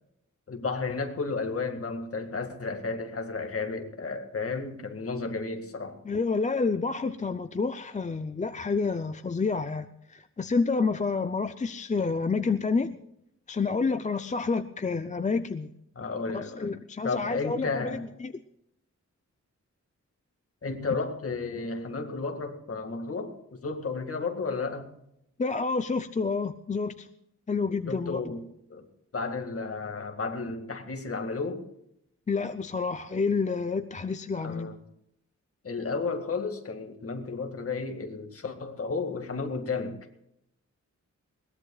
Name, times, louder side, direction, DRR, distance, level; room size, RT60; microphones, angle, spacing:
voice 1, 0.5-6.0 16.0-16.7 17.0-18.0 20.6-24.9 27.9-28.9 29.1-31.6 34.4-34.8 35.6-40.0, left 4 dB, 50° left, 5 dB, 2.0 m, -33 dB
voice 2, 6.1-13.0 13.5-15.7 16.3-18.3 25.4-27.1 27.5-28.3 32.3-34.7, left 4 dB, 25° left, 9 dB, 0.5 m, -29 dB
21.5 x 19.0 x 2.4 m, 0.78 s
wide cardioid pair, 165°, 29 cm